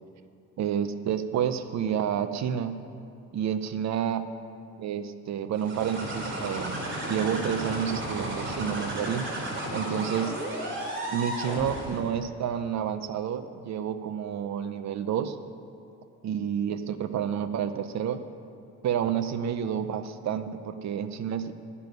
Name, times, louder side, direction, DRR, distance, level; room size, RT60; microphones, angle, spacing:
voice 1, 0.6-2.8 3.3-4.2 4.8-6.8 7.1-9.2 9.7-10.3 11.1-15.4 16.2-18.2 18.8-21.5, right 8 dB, 65° right, 11 dB, 0.7 m, -29 dB
sound 1, 5.5-12.1, right 1 dB, 40° right, 2.9 m, -33 dB
11.0 x 6.9 x 9.3 m, 2.6 s
cardioid pair, 90°, 30 cm